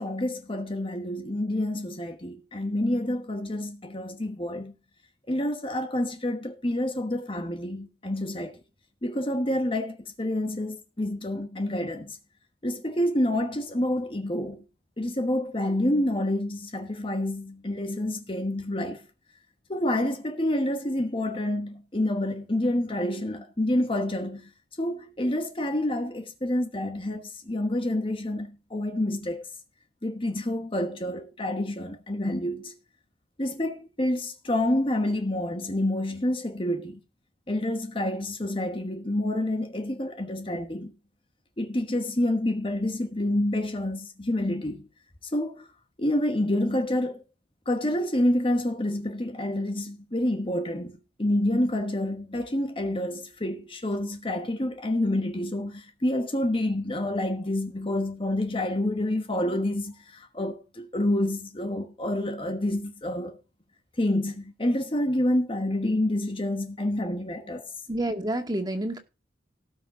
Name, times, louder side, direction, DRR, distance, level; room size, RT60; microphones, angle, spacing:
voice 1, 0.0-4.7 5.3-8.6 9.0-12.2 12.6-14.6 15.0-19.1 19.7-24.5 24.8-29.5 30.0-32.8 33.4-37.0 37.5-40.9 41.6-44.9 45.3-45.7 46.0-47.2 47.7-63.4 64.0-67.7, left 1 dB, 30° left, 1.2 m, -28 dB
voice 2, 67.9-69.0, right 1 dB, 20° right, 2.1 m, -28 dB
18.0 x 6.4 x 3.7 m
head